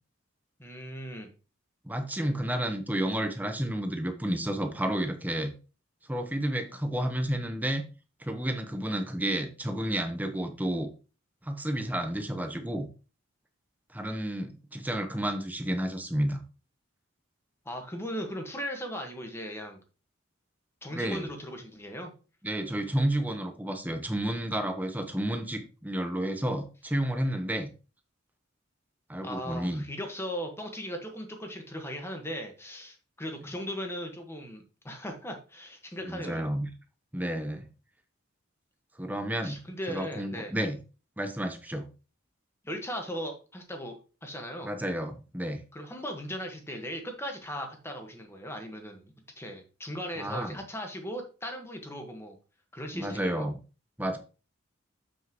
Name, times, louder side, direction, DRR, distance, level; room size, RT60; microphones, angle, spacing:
voice 1, 0.6-1.3 17.6-19.8 20.8-22.1 29.2-36.5 39.4-40.5 42.6-44.0 44.2-44.7 45.7-52.4 52.7-53.5, equal, 15° left, 4 dB, 1.4 m, -38 dB
voice 2, 1.8-5.5 6.1-7.8 8.2-10.9 11.4-12.9 13.9-16.4 20.9-21.3 22.4-27.7 29.1-29.9 36.0-36.7 37.1-37.6 39.0-39.6 39.9-40.8 41.2-41.9 44.6-45.6 50.2-50.6 52.9-53.6 54.0-54.2, right 1 dB, 10° right, 7 dB, 1.0 m, -31 dB
7.5 x 6.4 x 3.0 m, 0.33 s
head